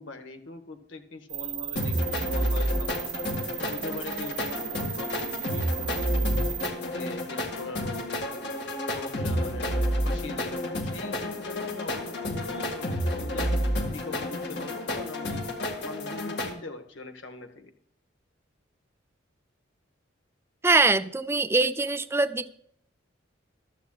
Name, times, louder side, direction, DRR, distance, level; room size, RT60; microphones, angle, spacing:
voice 1, 0.0-3.2 3.6-8.5 8.9-13.5 13.9-17.7, left 3 dB, 75° left, 1.4 m, -42 dB
sound 1, 1.3-6.7, right 18 dB, 75° right, 0.6 m, -36 dB
sound 2, 1.8-16.5, equal, 60° left, 1.9 m, -30 dB
voice 2, 20.6-22.5, right 3 dB, 15° right, 0.4 m, -23 dB
15.0 x 12.0 x 2.3 m
head